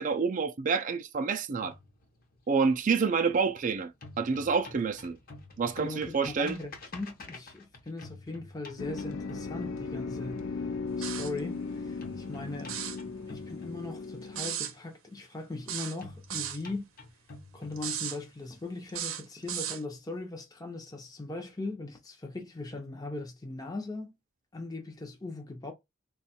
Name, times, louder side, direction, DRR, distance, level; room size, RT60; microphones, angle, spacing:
voice 1, 0.0-1.7 2.5-3.9 4.2-5.2 5.6-6.6, right 5 dB, 40° right, 0.4 m, -28 dB
sound 1, 1.6-3.6 3.9-10.4 12.0-14.4 16.0-18.4, left 2 dB, 45° left, 0.8 m, -49 dB
voice 2, 5.8-10.5 11.0-12.7 13.3-16.9 17.5-24.1 24.5-25.7, left 2 dB, 20° left, 0.6 m, -39 dB
sound 2, 8.8-14.5, left 4 dB, 75° left, 0.5 m, -37 dB
sound 3, 11.0-11.4 12.6-13.0 14.4-14.7 15.7-16.6 17.8-18.2 18.9-19.8, right 10 dB, 90° right, 0.6 m, -35 dB
3.1 x 2.3 x 4.1 m
head